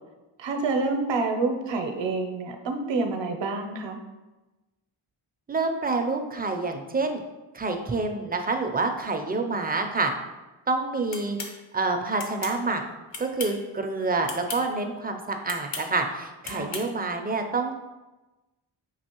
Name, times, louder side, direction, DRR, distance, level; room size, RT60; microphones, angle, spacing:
voice 1, 0.4-4.0 16.5-16.8, right 3 dB, 65° right, 5 dB, 0.7 m, -28 dB
voice 2, 5.5-7.2 7.5-10.1 10.7-11.4 11.7-12.8 13.2-17.7, right 3 dB, 20° right, 4 dB, 0.4 m, -27 dB
sound 1, 11.1-11.5 12.2-12.6 13.1-13.6 14.2-14.6 15.4-15.9 16.4-16.9, left 4 dB, 65° left, 0.8 m, -35 dB
5.4 x 2.8 x 2.9 m, 1.1 s
wide cardioid pair, 90°, 47 cm